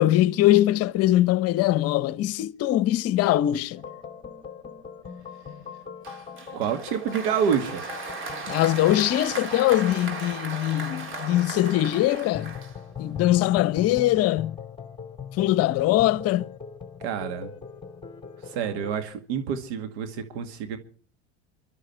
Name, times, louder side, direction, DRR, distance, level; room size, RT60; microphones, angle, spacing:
voice 1, 0.0-3.8 8.5-12.6 13.0-14.6 15.4-16.4, left 14 dB, 45° left, 1.0 m, -22 dB
sound 1, 3.8-19.0, left 6 dB, 15° left, 2.7 m, -41 dB
Applause, 6.0-13.2, right 4 dB, 40° right, 3.9 m, -37 dB
voice 2, 6.5-7.9 17.0-17.5 18.4-20.8, right 7 dB, 70° right, 2.1 m, -28 dB
24.5 x 13.0 x 4.5 m
hypercardioid pair, 100°, 33 cm